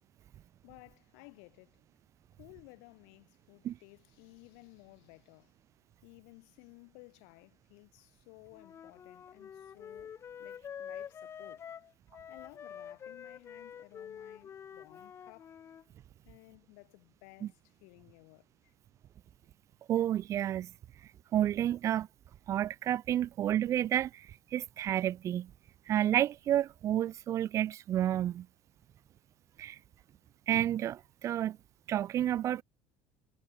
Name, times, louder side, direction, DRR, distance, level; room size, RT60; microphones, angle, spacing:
voice 1, 0.6-1.8 2.4-5.5 6.0-10.1 10.4-11.7 12.3-15.6 16.2-18.7, left 40 dB or more, 80° left, 6.8 m, -57 dB
Wind instrument woodwind instrument, 8.5-15.8, left 8 dB, 35° left, 3.8 m, -47 dB
voice 2, 19.9-20.7 21.3-22.1 22.5-24.3 24.5-25.5 25.9-28.5 29.6-29.8 30.5-31.6 31.9-32.6, right 11 dB, 40° right, 0.6 m, -30 dB
cardioid pair, 125°, 8 cm